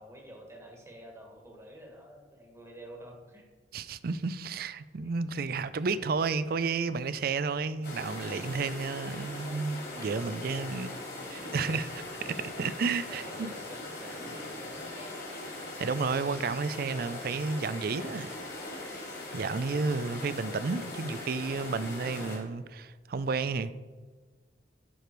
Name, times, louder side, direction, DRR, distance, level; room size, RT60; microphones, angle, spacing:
voice 1, 0.0-3.5 10.1-10.2 10.9-11.0 11.4-11.5 13.1-15.4, equal, 15° right, 1.6 m, -49 dB
voice 2, 3.7-10.9 11.3-13.5 15.8-18.4 18.8-19.0 19.3-23.7, right 4 dB, 55° right, 0.4 m, -32 dB
sound 1, 7.8-22.4, left 2 dB, 60° left, 3.1 m, -40 dB
11.5 x 5.0 x 4.6 m
head